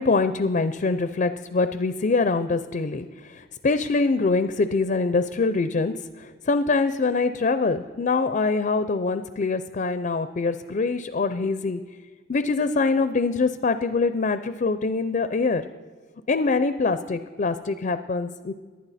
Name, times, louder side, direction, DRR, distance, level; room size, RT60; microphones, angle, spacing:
voice 1, 0.0-11.8 12.3-15.6 16.3-18.5, left 3 dB, 40° left, 11 dB, 0.4 m, -24 dB
19.0 x 11.5 x 4.1 m, 1.5 s
head